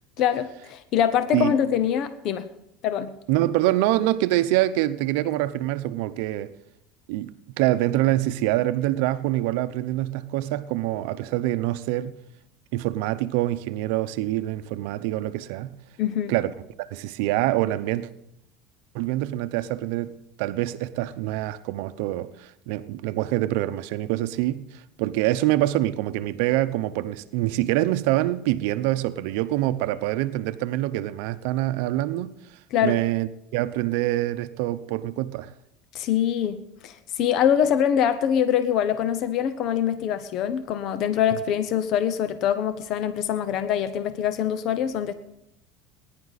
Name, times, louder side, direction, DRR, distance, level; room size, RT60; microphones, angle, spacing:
voice 1, 0.2-2.5 2.8-3.1 16.0-16.3 32.7-33.0 35.9-45.1, left 9 dB, 50° left, 0.8 m, -24 dB
voice 2, 3.3-6.5 7.1-12.1 12.7-15.7 16.3-18.1 18.9-20.1 20.4-24.7 25.0-32.4 32.8-35.5, right 15 dB, 75° right, 0.7 m, -25 dB
19.5 x 10.5 x 4.1 m
supercardioid pair, 135°, 0 cm